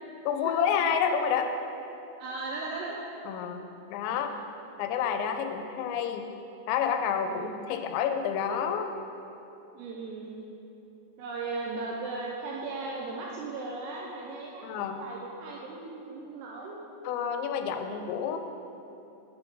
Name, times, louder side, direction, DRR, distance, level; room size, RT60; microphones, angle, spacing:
voice 1, 0.3-1.5 3.3-3.6 3.9-4.3 4.8-6.3 6.7-8.9 14.6-15.0 17.0-18.4, left 7 dB, 85° left, 6 dB, 2.8 m, -29 dB
voice 2, 2.2-3.0 4.1-4.4 7.3-7.6 9.7-10.5 11.2-14.7 15.0-16.8, right 3 dB, 85° right, -2 dB, 2.4 m, -37 dB
7.6 x 5.3 x 4.7 m, 2.9 s
omnidirectional pair, 5.3 m